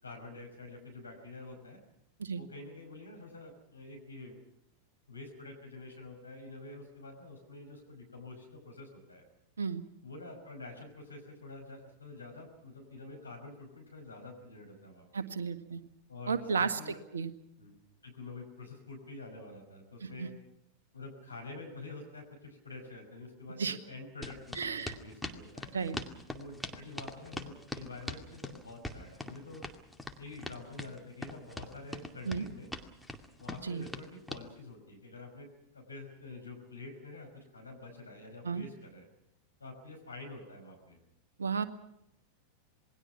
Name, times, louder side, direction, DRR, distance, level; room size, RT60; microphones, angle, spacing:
voice 1, 0.0-1.8 2.3-4.4 5.1-9.2 10.0-15.3 16.1-17.0 17.6-17.8 18.0-20.3 20.9-25.7 26.3-29.7 30.2-32.7 33.4-39.1 39.6-41.0, left 3 dB, 80° left, 2 dB, 5.6 m, -47 dB
voice 2, 15.1-15.8 16.3-17.3 20.0-20.3 23.6-23.8 24.6-24.9 25.7-26.0 32.3-32.4 33.6-33.8 38.4-38.6 41.4-41.6, right 5 dB, 70° right, 10 dB, 1.8 m, -33 dB
sound 1, 24.2-34.5, left 1 dB, 5° left, 2.2 m, -42 dB
27.5 x 21.0 x 5.9 m, 0.80 s
figure-of-eight pair, 90°, 0 cm